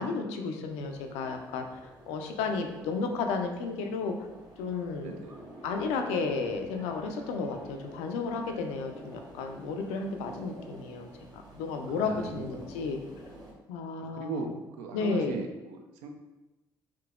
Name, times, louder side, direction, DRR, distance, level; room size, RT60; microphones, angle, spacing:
voice 1, 0.0-1.8 2.1-4.1 4.6-5.2 5.6-11.1 11.5-13.0 13.7-14.5 14.9-15.4, left 4 dB, 70° left, 4 dB, 0.4 m, -32 dB
sound 1, 0.7-13.5, right 1 dB, 35° right, 1.1 m, -49 dB
voice 2, 5.0-5.6 11.9-12.7 14.0-16.1, right 4 dB, 70° right, 4 dB, 0.4 m, -39 dB
3.6 x 2.7 x 2.3 m, 1.1 s
hypercardioid pair, 45°, 11 cm